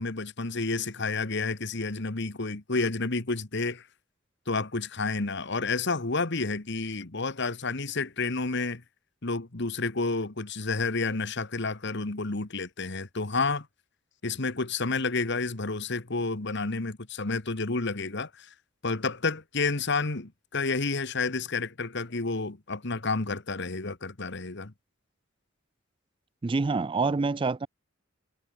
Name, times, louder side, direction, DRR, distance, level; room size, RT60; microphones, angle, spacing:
voice 1, 0.0-3.8 4.5-8.8 9.2-13.7 14.2-18.5 18.8-24.7, left 3 dB, 60° left, 1.6 m, -30 dB
voice 2, 26.4-27.7, right 4 dB, 25° right, 0.4 m, -26 dB
head